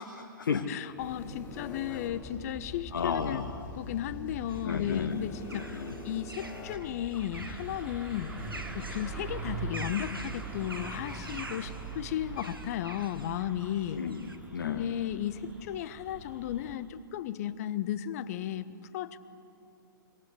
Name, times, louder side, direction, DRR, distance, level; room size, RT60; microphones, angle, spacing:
voice 1, 0.0-0.7 1.9-2.0 2.9-3.6 4.6-5.2 5.5-6.0 13.9-14.9, left 6 dB, 60° left, 5 dB, 1.3 m, -33 dB
voice 2, 0.7-3.4 3.7-5.6 6.0-8.4 8.7-14.0 14.6-18.7 18.9-19.2, left 11 dB, 45° left, 14 dB, 1.1 m, -34 dB
sound 1, 1.0-8.6, left 2 dB, 20° left, 5.6 m, -44 dB
sound 2, 4.5-14.4, right 2 dB, 85° right, 1.8 m, -46 dB
sound 3, 7.3-16.8, right 4 dB, 15° right, 4.6 m, -42 dB
26.0 x 24.5 x 8.3 m, 2.6 s
figure-of-eight pair, 110°, 11 cm